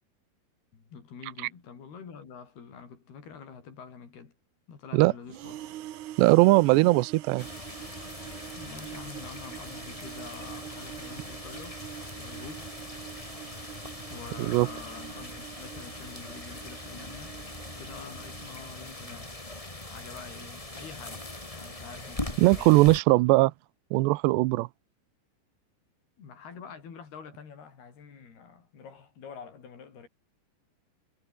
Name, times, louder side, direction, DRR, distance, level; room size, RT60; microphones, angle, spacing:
voice 1, 0.7-4.4 4.7-5.6 6.8-6.9 8.5-11.8 12.2-12.7 14.1-17.4 17.8-19.3 19.7-22.9 26.2-30.1, left 6 dB, 65° left, 6.7 m, -46 dB
sound 1, 5.3-19.2, right 13 dB, 70° right, 1.9 m, -45 dB
voice 2, 6.2-7.5 14.4-14.7 22.4-23.5 23.9-24.7, right 20 dB, 85° right, 2.8 m, -20 dB
sound 2, 7.4-23.0, left 2 dB, 10° left, 2.1 m, -41 dB
omnidirectional pair, 5.0 m